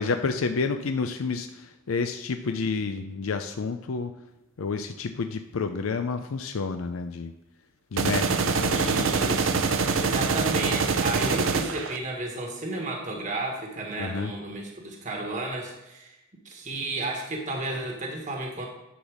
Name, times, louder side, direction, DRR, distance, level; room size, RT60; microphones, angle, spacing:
voice 1, 0.0-4.1 4.6-7.3 7.9-9.7 14.0-14.3, left 4 dB, 80° left, 7 dB, 0.5 m, -30 dB
sound 1, 8.0-12.0, right 4 dB, 65° right, 0.7 m, -25 dB
voice 2, 8.7-9.6 10.0-16.1 16.4-18.7, right 2 dB, 35° right, 1 dB, 1.3 m, -33 dB
10.0 x 4.1 x 6.2 m, 0.96 s
head